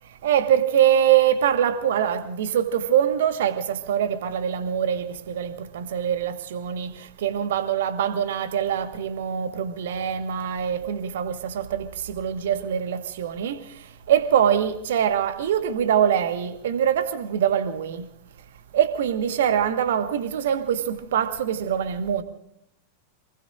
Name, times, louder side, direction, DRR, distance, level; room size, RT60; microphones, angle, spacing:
voice 1, 0.2-18.1 18.7-22.2, right 9 dB, 60° right, 1.5 m, -24 dB
27.0 x 20.0 x 2.6 m
figure-of-eight pair, 90°, 0 cm